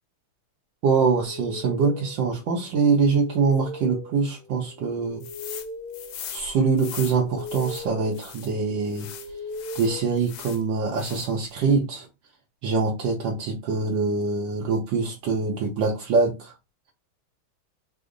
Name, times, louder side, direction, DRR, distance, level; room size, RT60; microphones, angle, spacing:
voice 1, 0.8-5.2 6.3-9.1 9.7-12.1 12.6-16.5, right 4 dB, 70° right, 1.3 m, -24 dB
sound 1, 1.2-10.9, left 2 dB, 25° right, 0.6 m, -40 dB
sound 2, 5.2-5.7 5.9-8.5 8.9-10.6 10.9-11.5, left 9 dB, 75° left, 1.3 m, -40 dB
3.5 x 2.0 x 3.6 m
omnidirectional pair, 2.3 m